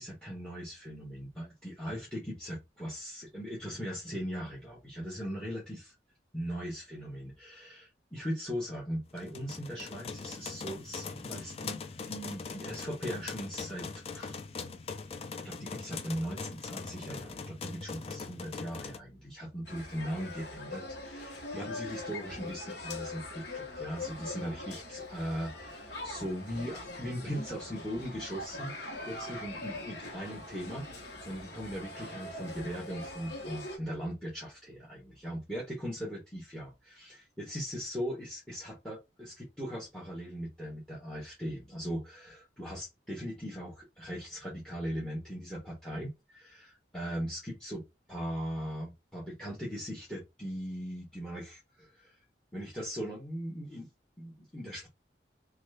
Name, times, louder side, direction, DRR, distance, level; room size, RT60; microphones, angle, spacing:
voice 1, 0.0-5.9 6.3-13.9 14.1-14.4 15.4-28.7 29.0-52.2 52.5-53.9 54.2-54.9, equal, 5° left, -3 dB, 1.0 m, -39 dB
sound 1, 9.2-19.0, left 4 dB, 35° left, 0.3 m, -41 dB
sound 2, 19.6-33.8, left 2 dB, 70° left, 1.0 m, -42 dB
2.9 x 2.3 x 3.3 m, 0.21 s
head